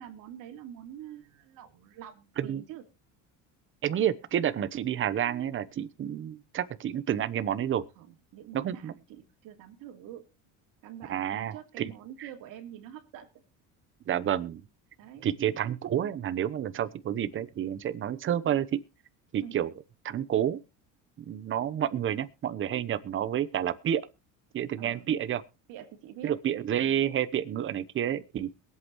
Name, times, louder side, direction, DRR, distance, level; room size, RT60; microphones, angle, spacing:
voice 1, 0.0-2.8 8.0-10.2 10.8-13.3 15.0-15.3 19.4-19.6 24.8-25.1 25.7-26.4 27.6-27.8, right 10 dB, 70° right, 2.9 m, -46 dB
voice 2, 3.8-7.9 8.5-8.9 11.1-11.9 14.1-14.6 15.2-18.8 19.3-19.7 20.0-20.6 21.2-24.0 24.5-25.4 26.2-28.5, right 10 dB, 35° right, 0.9 m, -29 dB
22.5 x 8.3 x 3.0 m
cardioid pair, 130°, 34 cm